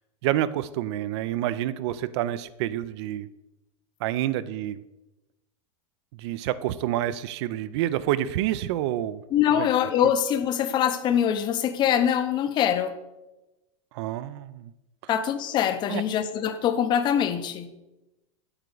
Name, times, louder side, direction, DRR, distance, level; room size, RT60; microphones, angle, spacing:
voice 1, 0.2-3.3 4.0-4.8 6.1-9.2 9.6-9.7 13.9-14.7 15.9-16.0, right 13 dB, 55° right, 17 dB, 0.4 m, -28 dB
voice 2, 9.3-13.0 15.1-17.7, left 9 dB, 25° left, 9 dB, 0.5 m, -24 dB
7.9 x 4.5 x 3.9 m, 0.98 s
supercardioid pair, 145°, 17 cm